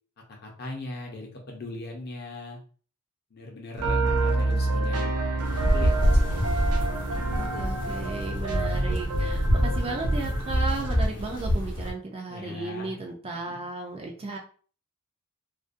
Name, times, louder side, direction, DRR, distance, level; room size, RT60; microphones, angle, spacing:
voice 1, 0.4-2.6 3.3-6.4 12.3-13.0 13.5-13.6, left 2 dB, 45° left, 1 dB, 0.6 m, -40 dB
voice 2, 3.8-5.1 7.4-14.4, right 3 dB, 25° right, 1 dB, 0.3 m, -35 dB
sound 1, 3.8-11.1, right 2 dB, 80° right, 0.5 m, -27 dB
sound 2, 5.4-11.9, equal, 85° left, 0.8 m, -27 dB
2.5 x 2.1 x 2.4 m, 0.42 s
head